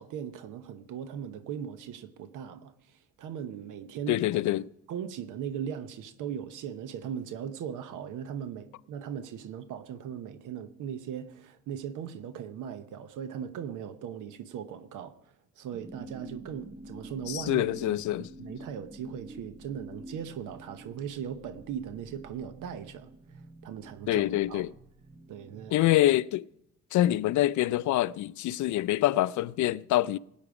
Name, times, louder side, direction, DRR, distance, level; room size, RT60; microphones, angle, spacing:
voice 1, 0.0-4.5 4.9-15.2 15.6-23.1 23.3-24.7 25.3-25.8, right 8 dB, 85° right, 1.0 m, -39 dB
voice 2, 4.1-4.7 17.3-18.3 24.1-24.7 25.7-26.5 26.9-30.2, left 15 dB, 75° left, 0.5 m, -25 dB
sound 1, 15.7-25.9, right 1 dB, 25° right, 1.4 m, -48 dB
17.0 x 8.9 x 4.9 m
cardioid pair, 90°, 30 cm